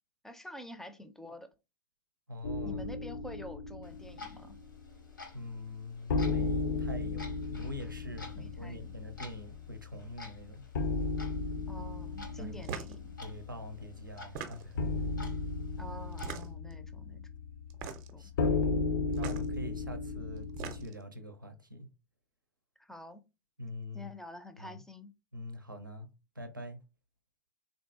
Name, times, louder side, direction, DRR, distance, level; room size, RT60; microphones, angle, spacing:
voice 1, 0.2-1.5 2.6-4.6 8.3-8.9 11.7-13.2 15.8-17.3 18.1-18.3 22.8-23.2 23.9-25.1, left 1 dB, 5° left, 0.4 m, -47 dB
voice 2, 2.3-2.8 5.3-10.6 12.4-12.6 13.2-14.8 18.2-18.6 19.1-21.9 23.6-24.1 24.6-24.8 25.3-26.8, left 1 dB, 90° right, 0.6 m, -44 dB
sound 1, 2.4-5.3 5.5-5.6 6.1-20.9, left 3 dB, 65° left, 0.5 m, -35 dB
Clock, 3.8-16.4, left 3 dB, 80° left, 0.9 m, -53 dB
sound 2, 12.6-13.0 14.2-14.9 16.1-16.7 17.7-18.2 19.1-19.4 20.4-21.0, right 7 dB, 45° right, 0.6 m, -41 dB
3.7 x 2.6 x 2.4 m
figure-of-eight pair, 85°, 11 cm